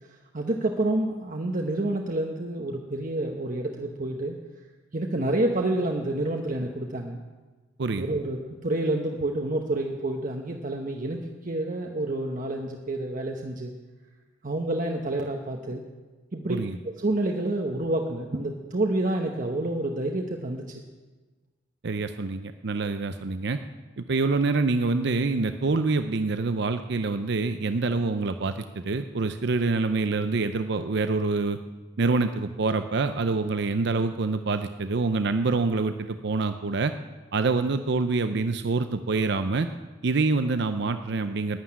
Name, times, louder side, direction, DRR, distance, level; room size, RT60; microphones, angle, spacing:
voice 1, 0.3-4.4 4.9-7.2 8.0-13.7 14.4-15.8 16.3-16.6 17.0-20.8, right 2 dB, 45° right, 2 dB, 1.0 m, -28 dB
voice 2, 21.8-23.6 24.0-31.6 32.0-36.9 37.3-39.7 40.0-41.6, right 3 dB, 60° right, 9 dB, 0.6 m, -26 dB
11.5 x 9.6 x 9.8 m, 1.3 s
head